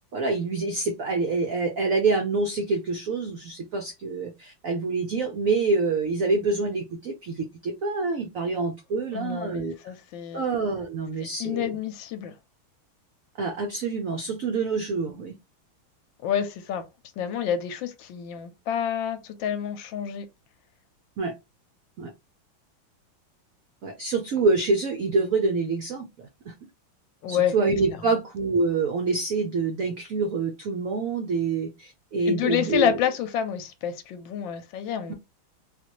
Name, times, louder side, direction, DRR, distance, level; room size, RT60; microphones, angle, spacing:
voice 1, 0.0-9.7 10.3-11.8 13.4-15.4 21.2-21.3 22.0-22.1 23.8-26.5 27.3-33.0 35.1-35.2, right 3 dB, 85° right, 0.7 m, -26 dB
voice 2, 9.1-10.5 11.4-12.3 16.2-16.8 17.2-20.3 27.2-27.5 27.9-28.2 32.3-35.1, left 9 dB, 75° left, 1.2 m, -28 dB
3.7 x 2.5 x 2.9 m
omnidirectional pair, 2.2 m